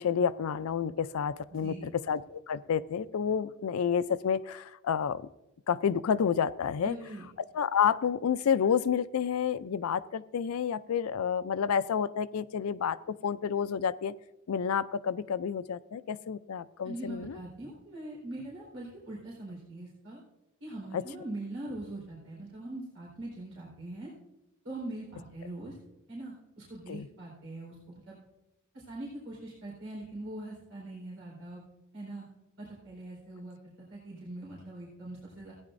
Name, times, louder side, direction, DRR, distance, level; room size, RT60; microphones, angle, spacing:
voice 1, 0.0-5.2 5.7-7.0 7.5-14.1 14.5-17.4 20.9-21.0 26.9-27.1, left 7 dB, 85° left, 15 dB, 0.4 m, -29 dB
voice 2, 1.5-1.9 6.8-7.3 16.8-20.2 20.6-24.1 24.6-25.8 26.1-28.2 28.7-31.6 31.9-32.3 32.6-35.5, right 1 dB, 65° right, -5 dB, 4.0 m, -42 dB
16.0 x 9.8 x 2.6 m, 0.89 s
head